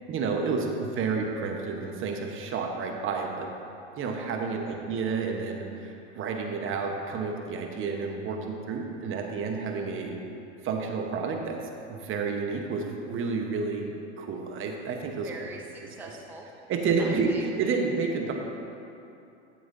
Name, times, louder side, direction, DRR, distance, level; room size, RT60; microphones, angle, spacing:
voice 1, 0.1-3.5 4.0-10.2 10.6-11.6 11.9-15.3 16.0-16.1 16.7-18.3, right 4 dB, 40° right, 2 dB, 1.1 m, -30 dB
voice 2, 4.3-4.7 15.1-16.5 17.0-17.8, right 2 dB, 5° right, 0 dB, 0.5 m, -44 dB
12.5 x 7.6 x 2.7 m, 2.7 s
hypercardioid pair, 105°, 33 cm